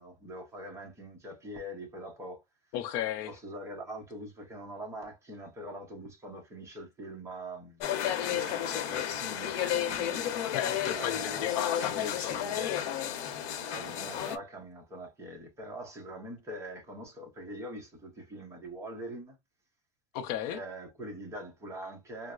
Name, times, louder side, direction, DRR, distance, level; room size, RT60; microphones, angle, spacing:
voice 1, 0.0-2.4 3.3-7.9 8.3-10.3 10.9-12.8 13.6-19.4 20.5-22.3, right 1 dB, 10° right, 0.7 m, -43 dB
voice 2, 2.7-3.3 10.5-12.9 20.1-20.6, left 11 dB, 45° left, 0.6 m, -35 dB
sound 1, 7.8-14.4, left 10 dB, 80° left, 0.8 m, -32 dB
3.9 x 2.1 x 2.3 m
supercardioid pair, 165°, 36 cm